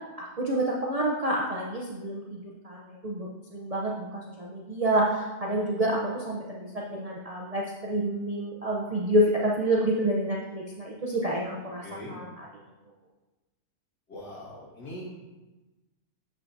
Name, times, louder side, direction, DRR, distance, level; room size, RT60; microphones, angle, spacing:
voice 1, 0.2-12.5, right 1 dB, 75° right, -3 dB, 0.3 m, -28 dB
voice 2, 11.8-12.2 14.1-15.1, left 1 dB, 85° left, -6 dB, 2.6 m, -41 dB
7.4 x 5.9 x 2.7 m, 1.1 s
omnidirectional pair, 1.7 m